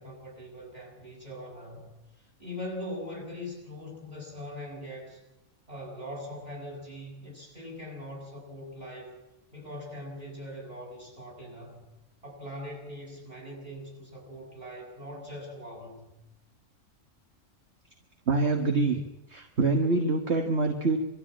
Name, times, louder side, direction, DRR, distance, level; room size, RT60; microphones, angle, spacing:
voice 1, 0.0-1.9 2.4-5.2 5.7-9.2 9.5-11.8 12.2-16.1, left 1 dB, 30° right, -1 dB, 7.5 m, -41 dB
voice 2, 18.3-19.0 19.3-21.0, right 3 dB, 60° right, 3 dB, 1.8 m, -25 dB
23.5 x 13.5 x 8.8 m, 0.95 s
omnidirectional pair, 1.3 m